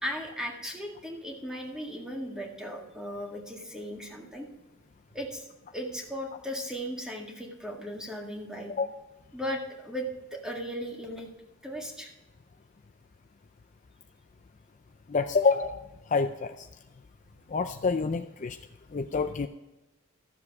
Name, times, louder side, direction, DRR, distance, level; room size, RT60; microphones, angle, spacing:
voice 1, 0.0-4.5 5.1-5.4 5.7-8.7 9.3-11.3 11.6-12.1, equal, 5° right, 0 dB, 1.9 m, -37 dB
voice 2, 15.1-15.8 16.1-16.5 17.5-18.6 18.9-19.5, left 4 dB, 35° left, 7 dB, 0.4 m, -27 dB
14.0 x 7.3 x 4.7 m, 1.0 s
head